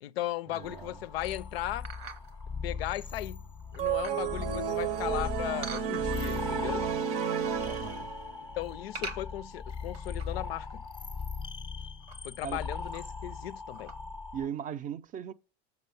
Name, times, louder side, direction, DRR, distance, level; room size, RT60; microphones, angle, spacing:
voice 1, 0.0-1.9 2.6-3.4 3.7-6.9 8.6-10.8 12.2-13.9, left 14 dB, 90° left, 0.5 m, -37 dB
voice 2, 0.5-0.9 7.6-8.1 12.4-12.6 14.3-15.3, right 8 dB, 30° right, 0.4 m, -38 dB
sound 1, 0.5-0.8 1.8-2.4 3.1-3.2 3.6-4.3 5.6-6.4 6.8-7.4 7.7-8.1 8.9-10.5 10.8-10.9 11.2-11.3 11.9-12.2 12.8-13.3 13.7-14.0, right 4 dB, 90° right, 1.2 m, -44 dB
sound 2, 0.6-14.5, left 5 dB, 15° left, 0.6 m, -39 dB
sound 3, 3.8-8.4, right 8 dB, 75° right, 0.8 m, -32 dB
7.0 x 4.5 x 6.7 m
supercardioid pair, 110°, 29 cm